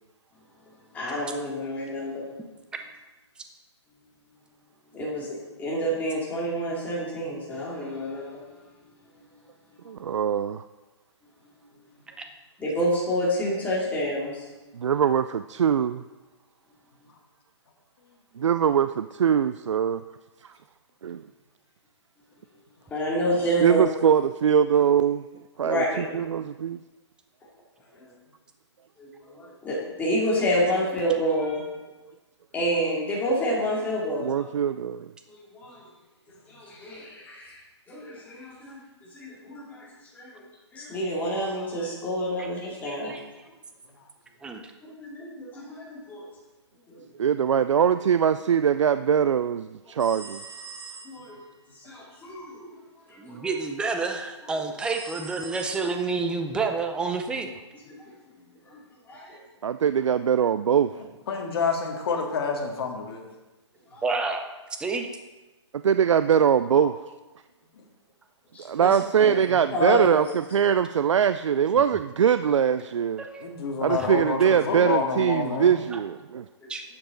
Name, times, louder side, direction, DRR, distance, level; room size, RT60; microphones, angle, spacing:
voice 1, 0.9-2.2 4.9-8.3 12.6-14.5 22.9-23.9 25.6-26.1 28.0-28.1 29.0-31.6 32.5-34.5 35.3-35.8 36.5-37.6 37.9-38.8 39.1-40.4 40.7-43.1 44.8-46.3 46.9-47.0 51.0-51.4 51.8-52.8 53.3-53.5 57.9-58.0 58.6-58.8 59.1-59.4 63.9-64.0 68.5-69.3 69.7-70.2 76.6-76.7, equal, 10° left, -5 dB, 2.6 m, -29 dB
voice 2, 9.9-10.6 14.7-16.0 18.4-20.0 20.4-20.5 21.0-21.2 23.6-25.2 25.6-26.8 34.2-35.1 47.2-50.4 59.6-60.9 65.8-67.0 68.6-73.2 73.8-76.5, right 8 dB, 85° right, 12 dB, 0.4 m, -22 dB
voice 3, 42.9-43.2 44.4-44.6 53.2-57.5 64.0-64.4 64.8-65.1 73.2-74.1 75.9-76.0 76.7-76.8, right 4 dB, 5° right, 5 dB, 0.6 m, -29 dB
sound 1, 50.0-51.4 54.8-56.4, right 5 dB, 40° right, 2.2 m, -43 dB
voice 4, 61.3-63.2 66.8-66.9 67.8-67.9 73.4-75.8, left 5 dB, 55° left, 2 dB, 1.9 m, -28 dB
11.5 x 7.1 x 3.8 m, 1.1 s
hypercardioid pair, 150°, 15 cm